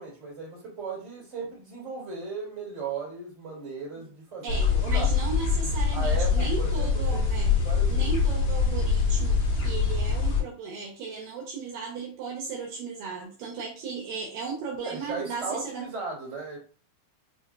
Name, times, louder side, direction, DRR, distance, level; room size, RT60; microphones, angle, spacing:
voice 1, 0.0-5.1 5.9-8.2 14.8-16.6, right 4 dB, 35° right, -5 dB, 1.3 m, -37 dB
voice 2, 4.4-7.6 7.9-15.9, right 4 dB, 90° right, -2 dB, 1.9 m, -36 dB
sound 1, 4.5-10.4, left 5 dB, 65° left, 1.8 m, -24 dB
6.9 x 2.7 x 2.4 m, 0.40 s
omnidirectional pair, 5.2 m